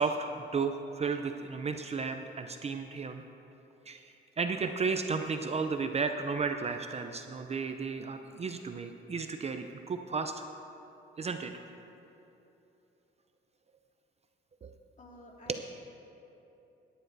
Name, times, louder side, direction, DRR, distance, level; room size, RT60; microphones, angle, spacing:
voice 1, 0.0-3.2 3.9-10.4 11.2-11.6 14.6-14.7 15.5-15.6, right 5 dB, 35° right, 7 dB, 0.5 m, -33 dB
voice 2, 15.0-15.6, left 1 dB, 40° left, -2 dB, 2.3 m, -52 dB
17.0 x 10.0 x 2.7 m, 3.0 s
cardioid pair, 90°, 20 cm